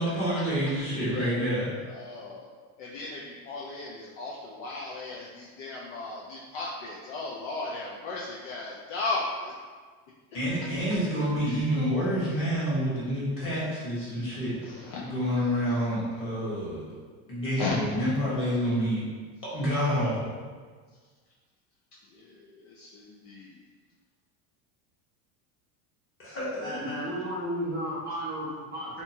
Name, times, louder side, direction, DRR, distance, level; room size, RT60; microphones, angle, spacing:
voice 1, 0.0-1.7 10.3-14.6 15.0-17.0 17.3-19.0 19.4-20.3 26.2-27.0, equal, 30° left, -8 dB, 1.1 m, -28 dB
voice 2, 1.8-2.5 2.8-9.5 11.4-11.7 14.6-15.1 17.6-17.9 22.1-23.6, left 3 dB, 50° left, -4 dB, 0.4 m, -36 dB
voice 3, 26.6-29.0, equal, 25° right, -9 dB, 0.3 m, -33 dB
2.8 x 2.2 x 2.6 m, 1.5 s
supercardioid pair, 125°, 46 cm